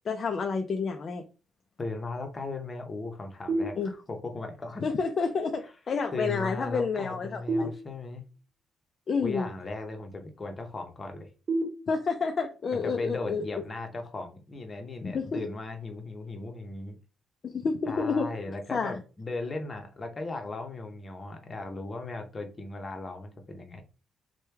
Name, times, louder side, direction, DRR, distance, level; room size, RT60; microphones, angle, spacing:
voice 1, 0.1-1.2 3.8-3.9 4.8-7.7 9.1-9.5 11.9-13.4 15.0-15.4 17.4-18.3 18.7-18.9, left 5 dB, 45° left, 0.4 m, -29 dB
voice 2, 1.8-4.8 5.6-5.7 6.1-8.3 9.2-11.3 12.7-17.0 17.9-23.8, left 3 dB, 30° left, 0.8 m, -37 dB
sound 1, 3.5-4.4 7.5-8.5 11.5-12.5, right 2 dB, 40° right, 1.3 m, -33 dB
3.1 x 2.2 x 3.3 m
cardioid pair, 90°, 0 cm